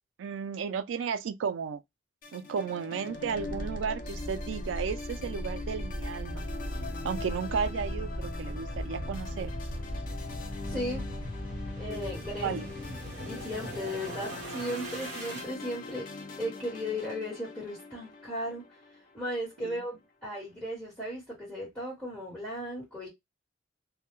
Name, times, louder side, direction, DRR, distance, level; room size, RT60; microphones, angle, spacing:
voice 1, 0.2-1.8 2.3-6.4 7.0-9.5 12.4-12.7 19.6-19.8, right 6 dB, 85° right, 0.3 m, -34 dB
sound 1, 2.2-19.6, left 3 dB, 45° left, 0.4 m, -43 dB
sound 2, 3.2-15.5, equal, 40° right, 0.9 m, -38 dB
voice 2, 10.7-11.0 11.8-12.5 13.3-16.1 16.4-18.6 19.1-23.1, equal, 10° left, 1.2 m, -36 dB
2.2 x 2.1 x 2.9 m
head